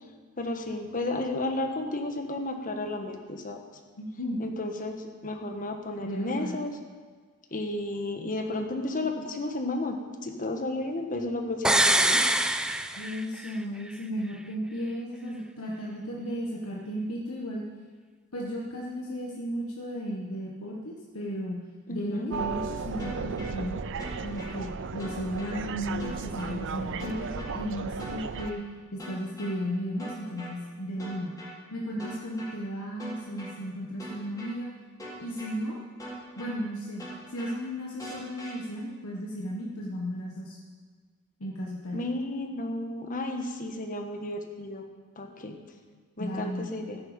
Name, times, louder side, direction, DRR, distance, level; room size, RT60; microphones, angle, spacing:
voice 1, 0.4-3.6 4.4-6.7 7.5-10.0 10.2-12.2 21.9-22.3 41.9-44.8 45.2-45.6 46.2-47.0, left 2 dB, 40° left, 5 dB, 1.4 m, -32 dB
voice 2, 4.0-4.4 6.0-6.6 13.0-17.6 18.3-21.6 21.9-23.8 24.2-28.6 28.9-31.3 31.7-34.7 35.2-35.8 36.3-37.0 37.3-40.6 41.4-42.0 46.2-46.7, equal, 75° left, -3 dB, 1.5 m, -34 dB
sound 1, 11.6-13.6 13.9-14.0, right 1 dB, 5° right, 0.4 m, -24 dB
sound 2, 22.3-28.5, right 5 dB, 60° right, 0.5 m, -35 dB
sound 3, 23.0-23.5 24.0-24.5 25.0-25.5 26.0-26.5 27.0-27.5 28.0-28.5 29.0-29.5 30.0-30.5 31.0-31.5 32.0-32.5 33.0-33.5 34.0-34.5 35.0-35.5 36.0-36.5 37.0-37.5 38.0-38.5, right 1 dB, 15° left, 3.7 m, -41 dB
14.5 x 10.5 x 5.2 m, 1.5 s
head